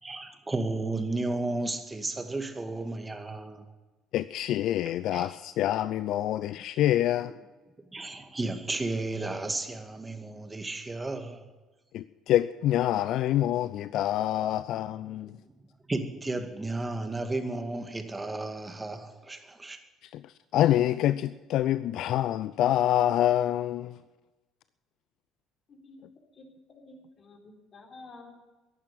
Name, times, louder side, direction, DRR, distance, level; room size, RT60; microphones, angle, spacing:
voice 1, 0.0-3.6 4.8-5.3 7.9-11.4 15.2-15.3 15.9-19.8, right 2 dB, 20° right, 2.2 m, -33 dB
voice 2, 4.1-7.3 11.9-15.4 20.0-24.0, left 12 dB, 60° left, 0.4 m, -26 dB
voice 3, 25.7-26.0 26.4-27.4 27.7-28.3, left 3 dB, 45° left, 3.9 m, -50 dB
15.0 x 11.5 x 7.8 m
hypercardioid pair, 55°, 0 cm